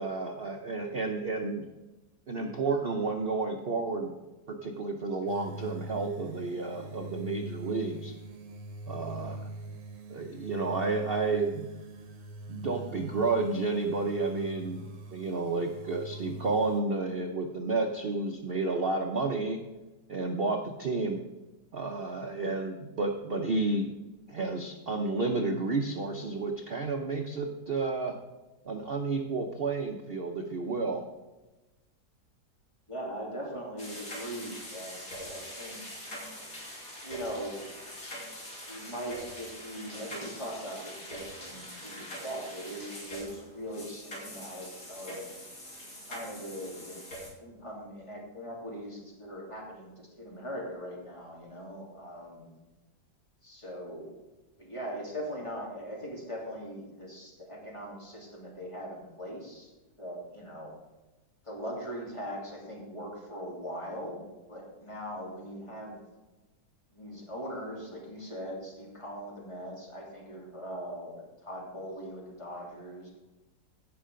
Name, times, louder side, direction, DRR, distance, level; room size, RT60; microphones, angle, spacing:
voice 1, 0.0-1.7 2.3-4.1 4.5-8.1 8.9-9.5 10.1-11.7 12.5-14.9 15.1-19.6 20.1-21.2 21.7-23.9 24.3-28.2 28.6-31.1, right 3 dB, 55° right, 3 dB, 0.6 m, -31 dB
sound 1, 5.3-16.8, right 2 dB, 80° right, 1.9 m, -43 dB
voice 2, 32.9-35.8 37.0-37.9 38.7-45.2 46.1-47.0 47.4-52.5 53.4-54.1 54.6-59.7 60.0-60.7 61.4-66.0 66.9-73.1, equal, 15° left, -3 dB, 2.7 m, -40 dB
sound 2, 33.8-47.3, equal, 50° left, 3.1 m, -43 dB
16.0 x 5.5 x 5.0 m, 1.1 s
omnidirectional pair, 1.9 m